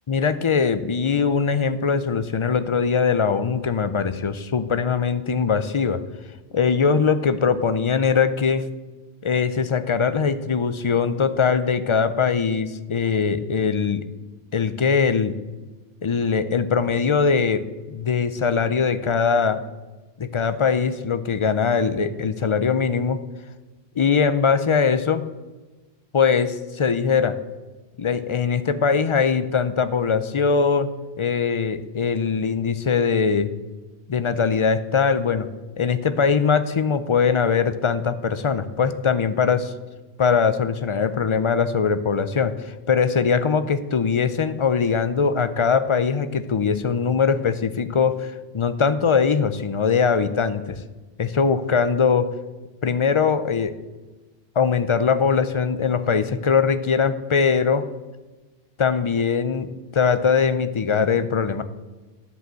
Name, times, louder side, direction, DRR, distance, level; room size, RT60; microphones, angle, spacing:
voice 1, 0.1-6.0 6.5-8.6 9.2-14.0 14.5-15.4 16.0-19.6 20.2-23.2 24.0-25.2 26.1-27.4 28.0-30.9 31.2-33.5 34.1-35.5 35.8-39.7 40.2-50.8 51.2-52.3 52.8-53.7 54.6-57.8 58.8-61.6, left 6 dB, 40° left, 12 dB, 0.5 m, -21 dB
10.0 x 5.6 x 7.5 m, 1.2 s
omnidirectional pair, 1.0 m